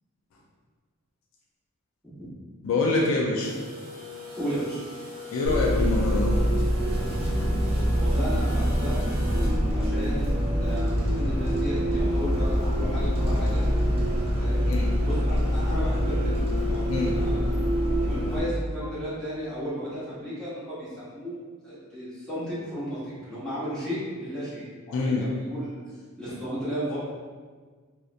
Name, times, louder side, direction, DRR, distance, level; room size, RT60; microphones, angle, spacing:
voice 1, 2.6-3.6 5.3-6.4 14.7-15.0 16.9-17.2 24.9-25.3, left 3 dB, 60° left, -1 dB, 0.3 m, -26 dB
sound 1, 3.4-9.5, right 1 dB, 75° right, 0.6 m, -40 dB
voice 2, 4.3-4.8 8.0-9.0 9.7-13.6 14.3-14.6 15.0-16.3 16.6-17.4 18.0-21.4 21.6-25.8 26.2-27.0, equal, 5° left, -13 dB, 1.0 m, -34 dB
Bus, 5.4-18.4, equal, 25° right, 0.4 m, -25 dB
2.7 x 2.1 x 2.4 m, 1.5 s
head